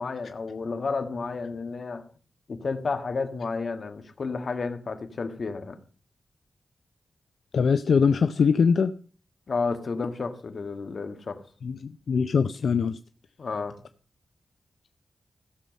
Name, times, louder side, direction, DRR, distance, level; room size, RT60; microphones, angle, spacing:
voice 1, 0.0-2.0 2.5-5.8 9.5-11.4 13.4-13.8, left 4 dB, 55° left, 1.7 m, -31 dB
voice 2, 7.5-8.9 11.6-13.0, left 6 dB, 80° left, 0.5 m, -22 dB
16.0 x 7.1 x 5.3 m
wide cardioid pair, 115°, 0 cm